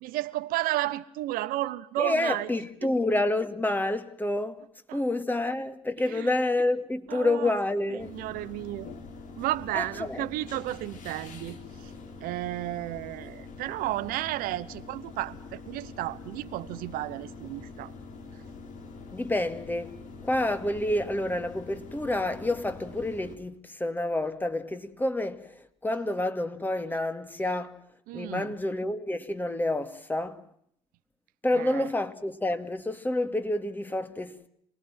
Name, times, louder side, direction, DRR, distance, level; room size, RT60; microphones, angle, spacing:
voice 1, 0.0-2.5 4.9-5.0 6.0-6.3 7.1-7.5 7.9-8.9 9.4-11.9 12.2-17.9 28.1-28.5 31.5-31.9, right 16 dB, 65° right, 1.0 m, -33 dB
voice 2, 2.0-4.6 4.9-8.1 9.7-10.3 19.1-19.9 20.2-27.8 28.1-30.4 31.4-34.5, left 1 dB, 10° left, 2.4 m, -29 dB
sound 1, 8.0-23.4, left 4 dB, 55° left, 3.8 m, -45 dB
27.5 x 19.0 x 7.4 m
hypercardioid pair, 65°, 16 cm